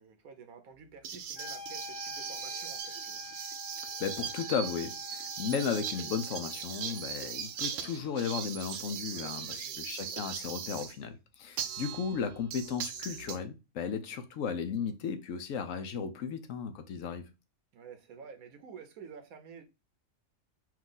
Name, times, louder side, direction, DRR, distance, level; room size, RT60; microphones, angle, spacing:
voice 1, 0.0-3.2 9.1-9.9 17.7-19.6, right 6 dB, 85° right, 1.3 m, -50 dB
metal bowl, 1.0-10.9 11.6-13.4, right 8 dB, 70° right, 0.9 m, -39 dB
Wind instrument woodwind instrument, 1.3-7.4, left 5 dB, 45° left, 0.5 m, -47 dB
voice 2, 4.0-17.2, left 6 dB, 70° left, 1.0 m, -35 dB
4.6 x 2.4 x 3.8 m
omnidirectional pair, 1.5 m